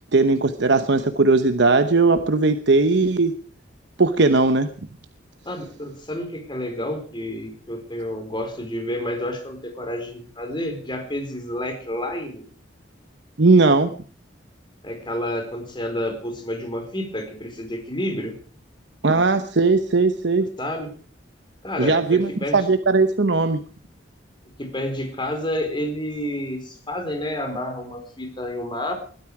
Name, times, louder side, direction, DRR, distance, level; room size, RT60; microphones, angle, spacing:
voice 1, 0.1-3.3 4.0-4.7 13.4-14.0 19.0-20.5 21.8-23.6, right 3 dB, 70° right, 9 dB, 1.0 m, -18 dB
voice 2, 5.4-12.4 14.8-18.4 20.6-20.9 21.6-22.6 24.6-28.9, left 1 dB, 25° left, 5 dB, 4.5 m, -29 dB
21.5 x 13.0 x 4.9 m, 0.42 s
head